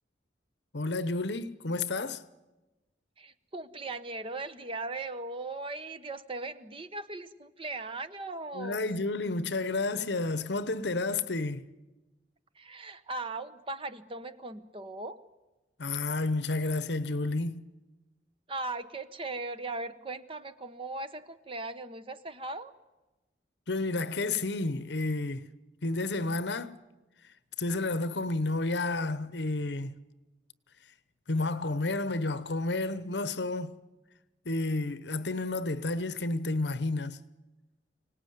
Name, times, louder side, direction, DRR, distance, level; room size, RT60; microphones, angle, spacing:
voice 1, 0.7-2.2 8.5-11.6 15.8-17.7 23.7-25.4 25.8-26.8 27.6-29.9 31.3-33.8 34.4-37.2, left 2 dB, 70° left, 1.0 m, -31 dB
voice 2, 3.2-8.9 12.5-15.2 18.5-22.7, right 2 dB, 30° right, 1.0 m, -38 dB
25.0 x 18.5 x 9.4 m
head